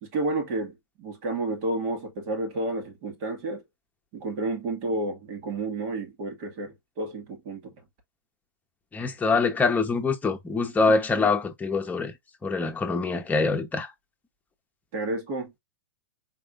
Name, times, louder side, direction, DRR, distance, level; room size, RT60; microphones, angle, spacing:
voice 1, 0.0-3.6 4.1-7.7 11.1-11.3 14.9-15.6, right 2 dB, 45° right, 2.0 m, -31 dB
voice 2, 8.9-12.1 12.4-13.9, left 4 dB, 15° left, 1.0 m, -24 dB
4.6 x 3.4 x 2.5 m
hypercardioid pair, 115°, 12 cm